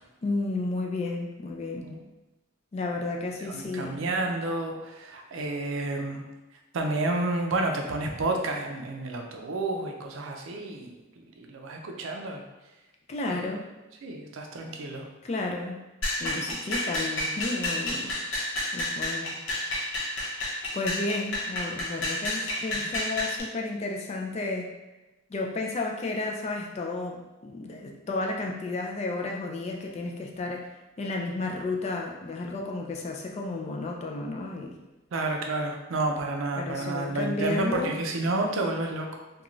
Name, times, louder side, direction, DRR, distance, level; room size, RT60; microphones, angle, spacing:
voice 1, 0.2-1.8 2.7-4.0 13.1-13.6 15.2-15.8 16.2-18.1 18.7-19.4 20.7-24.7 25.3-30.7 31.0-34.8 36.6-37.9, left 2 dB, 35° left, 1 dB, 0.3 m, -32 dB
voice 2, 3.4-6.2 6.7-10.9 11.4-12.4 13.3-13.5 14.0-15.1 22.7-22.9 35.1-39.1, right 2 dB, 80° right, 2 dB, 0.4 m, -30 dB
sound 1, 16.0-23.4, left 1 dB, 75° left, 0.7 m, -30 dB
2.5 x 2.3 x 3.0 m, 1.0 s
head